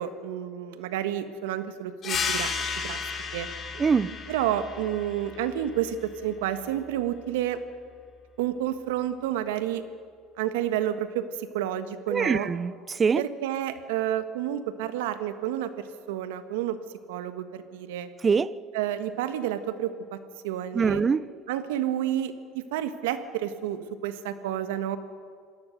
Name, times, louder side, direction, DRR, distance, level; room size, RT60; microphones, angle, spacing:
voice 1, 0.0-2.5 2.8-3.0 3.3-3.5 4.3-7.6 8.4-9.8 10.4-12.5 13.2-16.8 17.1-18.1 18.7-20.2 20.4-21.0 21.5-25.0, right 11 dB, 85° right, 1.5 m, -30 dB
sound 1, 2.0-7.2, left 5 dB, 45° left, 3.8 m, -34 dB
voice 2, 3.8-4.1 12.1-13.2 18.2-18.5 20.7-21.2, right 5 dB, 30° right, 0.7 m, -23 dB
27.0 x 18.0 x 6.6 m
hypercardioid pair, 80°, 0 cm